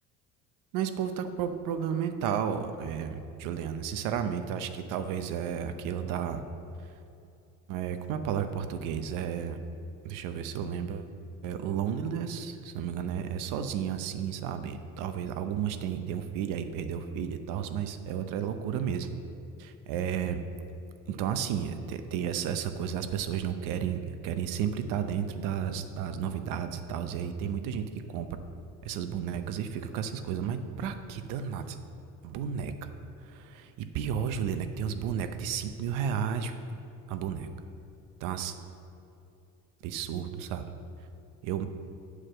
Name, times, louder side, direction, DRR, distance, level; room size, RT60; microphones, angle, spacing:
voice 1, 0.7-6.4 6.8-6.9 7.7-9.6 10.0-11.1 11.4-19.1 19.6-20.4 21.1-28.3 28.8-31.8 32.2-32.9 33.2-36.5 37.1-37.5 38.2-38.6 39.8-40.7 41.4-41.7, right 8 dB, 90° right, 9 dB, 0.8 m, -32 dB
8.8 x 4.8 x 7.6 m, 2.7 s
cardioid pair, 175°, 31 cm